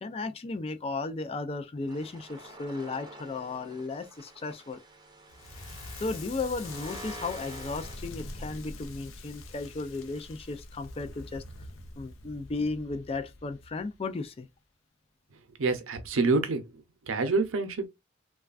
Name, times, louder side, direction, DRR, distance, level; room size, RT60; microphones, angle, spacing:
voice 1, 0.0-4.8 6.0-11.4 12.0-14.5, left 3 dB, 30° left, 0.3 m, -35 dB
sound 1, 1.9-8.0, right 1 dB, 20° right, 0.6 m, -47 dB
Crackle, 5.3-14.3, left 2 dB, 75° left, 0.6 m, -44 dB
voice 2, 15.6-17.9, right 3 dB, 85° right, 0.6 m, -27 dB
3.1 x 2.3 x 2.3 m
head